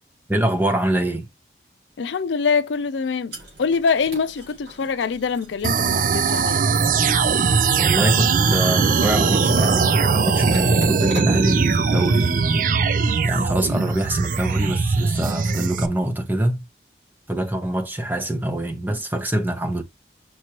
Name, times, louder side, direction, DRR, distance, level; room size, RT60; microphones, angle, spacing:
voice 1, 0.3-1.3 7.8-12.7 13.0-16.6 17.3-19.8, right 1 dB, 10° right, 0.8 m, -24 dB
voice 2, 2.0-6.6, left 5 dB, 90° left, 0.5 m, -24 dB
cat with collar eating food, 3.3-12.4, right 1 dB, 75° right, 3.6 m, -42 dB
sound 1, 5.6-15.9, right 5 dB, 45° right, 0.4 m, -20 dB
6.1 x 3.0 x 2.9 m
head